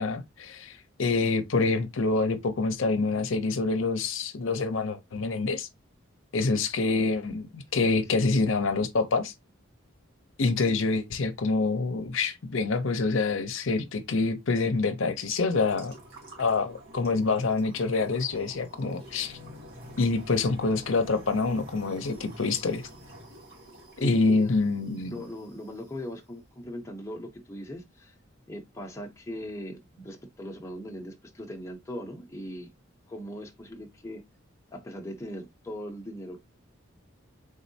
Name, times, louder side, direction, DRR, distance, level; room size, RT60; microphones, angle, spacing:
voice 1, 0.0-5.7 6.3-9.3 10.4-15.9 16.4-19.4 20.0-22.9 24.0-25.1, left 3 dB, 70° left, 0.6 m, -26 dB
voice 2, 7.8-8.2 24.0-24.6 25.0-28.2 28.5-32.7 33.1-34.2 34.7-36.4, equal, 15° left, 0.7 m, -39 dB
sound 1, 15.5-25.9, equal, 85° right, 2.2 m, -48 dB
4.1 x 3.7 x 2.7 m
head